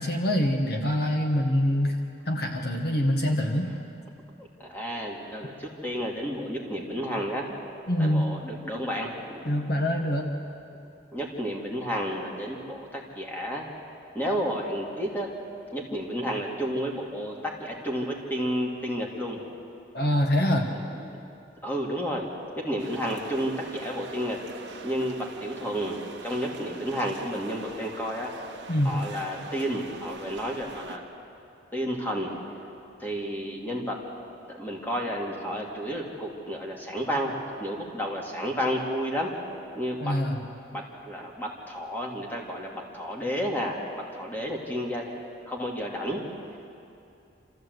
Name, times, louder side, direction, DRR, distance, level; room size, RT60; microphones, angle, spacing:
voice 1, 0.0-2.0 2.2-3.7 7.9-8.3 9.4-10.3 19.9-20.7 28.7-29.0 40.0-40.4, left 1 dB, 55° left, 2 dB, 1.6 m, -25 dB
voice 2, 4.4-7.5 8.0-9.5 11.1-13.7 14.1-15.3 15.7-19.4 20.9-21.2 21.6-22.3 22.6-24.4 24.8-28.3 28.8-31.0 31.7-32.5 33.0-34.0 34.5-39.3 39.8-40.1 40.7-45.0 45.4-46.2, equal, 10° left, -2 dB, 2.6 m, -31 dB
sound 1, 22.8-31.0, right 3 dB, 70° right, 1.5 m, -43 dB
27.0 x 14.5 x 8.1 m, 2.6 s
head